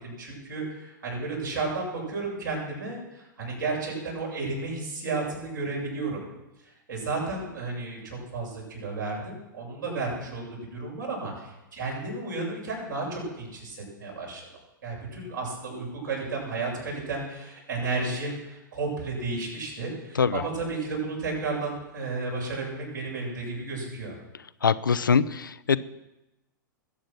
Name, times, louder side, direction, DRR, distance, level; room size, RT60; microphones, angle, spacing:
voice 1, 0.0-6.2 6.9-14.4 14.8-24.1, right 3 dB, 65° right, -2 dB, 7.4 m, -33 dB
voice 2, 24.6-25.8, left 6 dB, 75° left, 14 dB, 0.6 m, -23 dB
20.5 x 8.8 x 6.1 m, 0.96 s
figure-of-eight pair, 100°, 11 cm